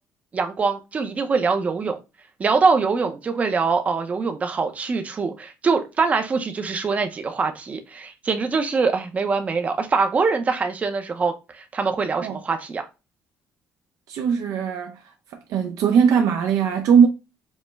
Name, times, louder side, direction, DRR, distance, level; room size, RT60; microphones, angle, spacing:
voice 1, 0.3-2.0 2.4-12.9, right 4 dB, 25° right, 0.5 m, -23 dB
voice 2, 14.1-15.0 15.3-17.1, right 7 dB, 75° right, 0.6 m, -19 dB
5.2 x 2.1 x 3.3 m
cardioid pair, 165°, 6 cm